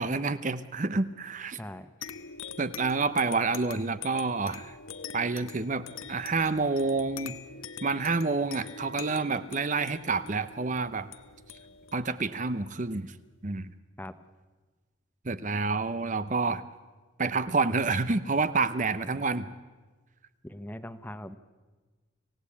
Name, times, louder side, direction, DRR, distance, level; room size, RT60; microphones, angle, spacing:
voice 1, 0.0-1.6 2.6-4.7 5.1-7.4 7.8-11.1 11.9-13.1 13.4-13.7 15.2-16.6 17.2-19.5, right 3 dB, 35° right, 13 dB, 0.7 m, -28 dB
voice 2, 1.6-1.9 14.0-14.2 19.2-19.3 20.4-21.4, left 1 dB, 10° left, 12 dB, 0.8 m, -41 dB
sound 1, 2.0-13.1, left 6 dB, 75° left, 1.1 m, -45 dB
26.5 x 17.0 x 8.5 m, 1.3 s
head